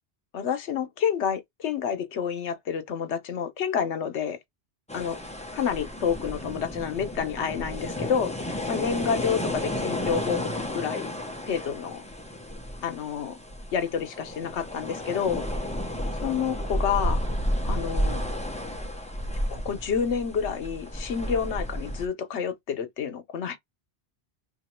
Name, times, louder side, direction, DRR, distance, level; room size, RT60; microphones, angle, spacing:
voice 1, 0.3-4.4 4.9-5.2 5.5-8.3 8.7-11.1 11.5-12.0 12.8-13.4 13.7-15.4 16.2-17.2 17.7-18.2 19.5-23.6, left 7 dB, 85° left, 1.1 m, -29 dB
sound 1, 4.9-22.1, equal, 5° left, 0.7 m, -32 dB
3.0 x 2.7 x 4.3 m
omnidirectional pair, 1.1 m